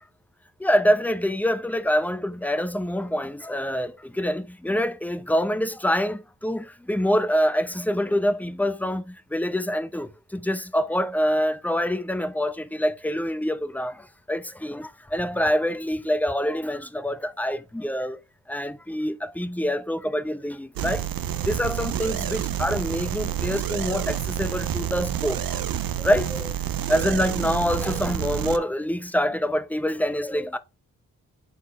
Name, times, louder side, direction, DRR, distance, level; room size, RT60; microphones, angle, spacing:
voice 1, 0.6-13.9 14.3-18.2 18.5-21.0 21.5-25.6 26.0-26.5 26.9-30.6, equal, 5° left, 0.8 m, -26 dB
sound 1, 20.8-28.6, right 10 dB, 70° right, 0.7 m, -28 dB
7.3 x 4.3 x 3.2 m
cardioid pair, 50°, 36 cm